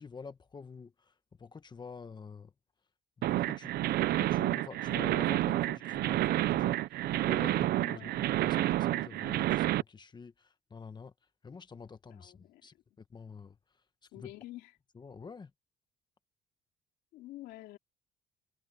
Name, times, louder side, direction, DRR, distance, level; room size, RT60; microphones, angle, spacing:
voice 1, 0.0-2.5 3.2-3.7 4.1-6.8 7.2-11.1 11.4-13.6 14.2-14.3 14.9-15.5, left 5 dB, 25° left, 1.2 m, -47 dB
sound 1, 3.2-9.8, right 15 dB, 70° right, 0.6 m, -29 dB
voice 2, 7.8-8.1 12.1-12.7 14.1-14.7 17.1-17.8, left 16 dB, 85° left, 2.9 m, -48 dB
cardioid pair, 110°, 17 cm